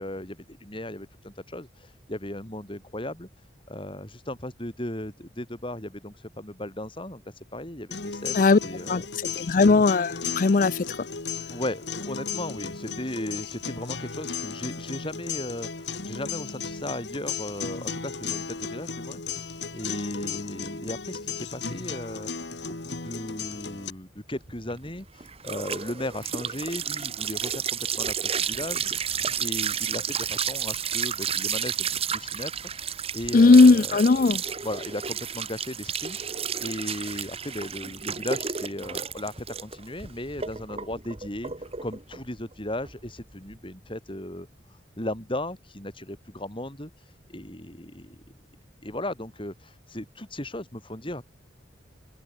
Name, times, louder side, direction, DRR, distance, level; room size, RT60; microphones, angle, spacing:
voice 1, 0.0-9.0 11.5-32.5 32.8-34.0 34.6-48.2 48.8-51.2, left 1 dB, 30° left, 5.7 m, -36 dB
sound 1, 7.9-23.9, left 5 dB, 70° left, 2.1 m, -35 dB
voice 2, 9.4-10.8 33.3-34.4, left 3 dB, 45° left, 0.5 m, -17 dB
sound 2, 24.4-43.5, right 7 dB, 35° right, 1.5 m, -32 dB
open air
head